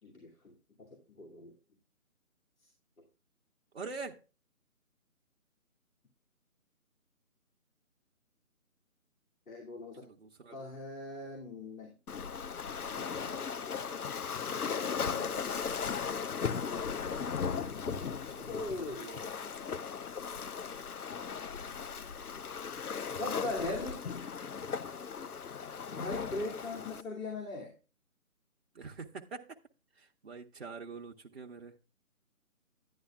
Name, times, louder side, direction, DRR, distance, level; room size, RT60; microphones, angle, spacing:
voice 1, 0.0-1.5 3.0-3.1 9.5-10.1 10.5-12.0 12.9-13.5 14.5-15.7 18.3-19.1 23.2-24.1 25.9-27.7, left 2 dB, 65° left, 2.7 m, -41 dB
voice 2, 3.7-4.2 10.0-10.6 18.4-19.4 28.7-29.6 30.0-31.7, right 4 dB, 45° right, 0.8 m, -45 dB
Waves surf, 12.1-27.0, left 6 dB, 90° left, 0.8 m, -37 dB
11.0 x 9.6 x 2.4 m
figure-of-eight pair, 165°, 43 cm